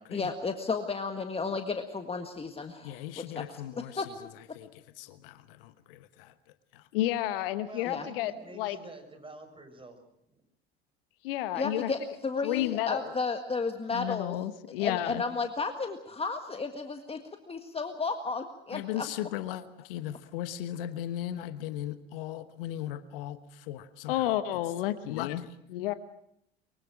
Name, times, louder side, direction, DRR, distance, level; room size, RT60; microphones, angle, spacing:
voice 1, 0.1-4.1 7.8-8.1 11.5-14.4 14.8-17.2 17.5-19.0, left 4 dB, 20° left, 6 dB, 1.7 m, -33 dB
voice 2, 2.8-4.0 4.5-4.7 5.0-6.3 6.7-8.8 11.2-11.9 12.4-13.1 13.9-15.2 18.7-25.9, left 13 dB, 70° left, 12 dB, 1.2 m, -33 dB
voice 3, 7.6-10.0 10.3-10.4, right 2 dB, 20° right, 6 dB, 6.3 m, -48 dB
24.0 x 23.5 x 6.2 m, 0.75 s
hypercardioid pair, 70°, 30 cm